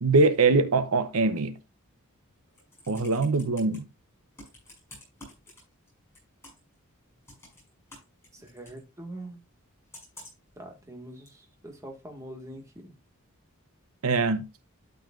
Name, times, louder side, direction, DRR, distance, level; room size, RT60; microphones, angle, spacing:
voice 1, 0.0-1.6 2.9-3.8 14.0-14.4, right 3 dB, 80° right, 0.8 m, -23 dB
Computer keyboard, 2.4-3.8 4.4-5.9 6.1-6.7 7.3-8.8 9.9-10.5 11.3-11.4, left 1 dB, 10° left, 6.2 m, -49 dB
voice 2, 8.3-9.4 10.6-12.9, right 1 dB, 15° right, 1.7 m, -43 dB
12.0 x 6.9 x 2.5 m
head